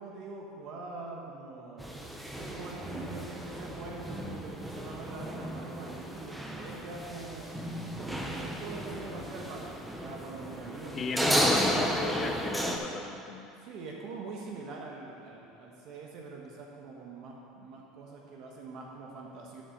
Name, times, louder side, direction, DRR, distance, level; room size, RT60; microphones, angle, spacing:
voice 1, 0.0-7.5 8.0-11.9 13.6-19.6, right 3 dB, 60° right, -1 dB, 1.3 m, -44 dB
sound 1, 1.8-12.8, equal, 5° right, 1.0 m, -33 dB
voice 2, 10.9-13.5, left 4 dB, 35° left, 6 dB, 0.8 m, -36 dB
10.5 x 5.5 x 5.3 m, 2.7 s
supercardioid pair, 100°, 0 cm